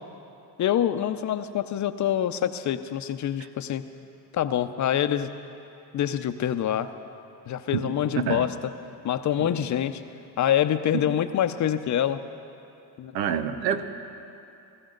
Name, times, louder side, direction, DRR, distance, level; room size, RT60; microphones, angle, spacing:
voice 1, 0.6-3.8 4.3-5.3 5.9-6.9 7.5-8.5 9.0-10.0 10.4-12.2 13.0-13.1, left 10 dB, 35° left, 11 dB, 0.7 m, -25 dB
voice 2, 8.1-8.5 9.4-9.5 10.9-11.0 13.1-13.8, right 8 dB, 90° right, 9 dB, 0.9 m, -27 dB
19.0 x 15.0 x 3.9 m, 2.7 s
hypercardioid pair, 80°, 49 cm